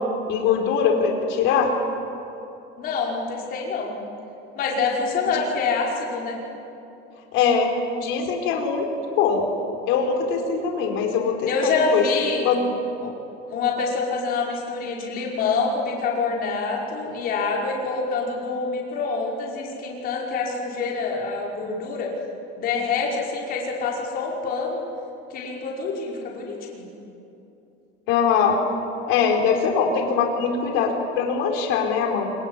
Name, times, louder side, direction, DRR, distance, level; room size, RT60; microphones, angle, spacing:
voice 1, 0.3-1.7 7.3-7.7 8.0-8.9 9.2-9.5 9.9-12.0 12.4-12.6 28.1-28.6 29.1-32.3, left 6 dB, 65° left, 2 dB, 4.5 m, -22 dB
voice 2, 2.8-3.9 4.6-6.4 11.4-12.5 13.0-13.1 13.5-22.1 22.5-24.8 25.3-26.8, left 4 dB, 45° left, -2 dB, 5.5 m, -26 dB
25.0 x 23.0 x 9.8 m, 2.8 s
cardioid pair, 170°, 21 cm